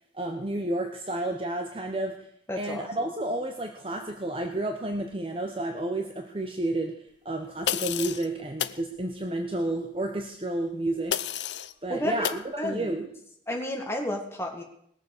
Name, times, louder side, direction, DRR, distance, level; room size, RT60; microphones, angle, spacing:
voice 1, 0.1-2.2 2.6-11.2 11.8-13.1, right 1 dB, 30° right, 4 dB, 0.9 m, -31 dB
voice 2, 2.5-3.1 11.9-12.3 12.6-12.9 13.5-14.6, left 1 dB, 15° left, 2 dB, 1.9 m, -31 dB
sound 1, 7.7-8.3 8.6-8.8 11.1-11.7 12.2-12.4, left 10 dB, 85° left, 0.6 m, -30 dB
19.5 x 7.1 x 6.5 m, 0.72 s
head